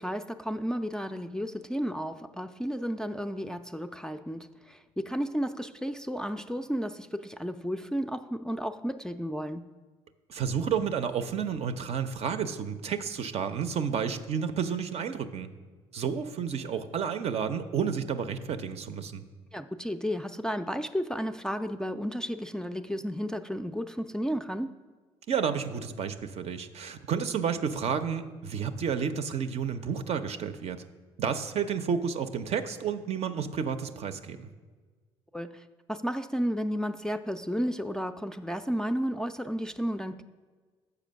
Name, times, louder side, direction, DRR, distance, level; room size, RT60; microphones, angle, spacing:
voice 1, 0.0-9.7 19.5-24.7 35.3-35.6 35.9-40.2, equal, 5° left, 7 dB, 0.4 m, -33 dB
voice 2, 10.3-15.5 15.9-19.2 25.3-30.8 31.2-34.5, right 7 dB, 55° right, 9 dB, 0.5 m, -31 dB
6.8 x 5.0 x 6.2 m, 1.4 s
supercardioid pair, 60°, 13 cm